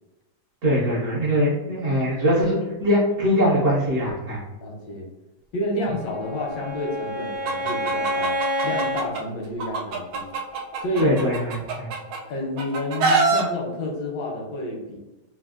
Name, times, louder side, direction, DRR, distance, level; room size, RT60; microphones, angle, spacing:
voice 1, 0.6-4.4 11.0-11.9, equal, 65° right, -6 dB, 0.8 m, -22 dB
voice 2, 4.6-5.1 5.5-8.4 8.6-10.3 10.8-11.1 12.3-15.0, left 1 dB, 85° left, 0 dB, 1.4 m, -29 dB
Bowed string instrument, 5.9-9.1, equal, 35° right, 0.3 m, -28 dB
Chicken rooster, 7.5-9.2 9.6-12.2 12.6-13.4, right 4 dB, 80° right, 1.2 m, -24 dB
3.3 x 2.4 x 2.4 m, 1.0 s
omnidirectional pair, 1.9 m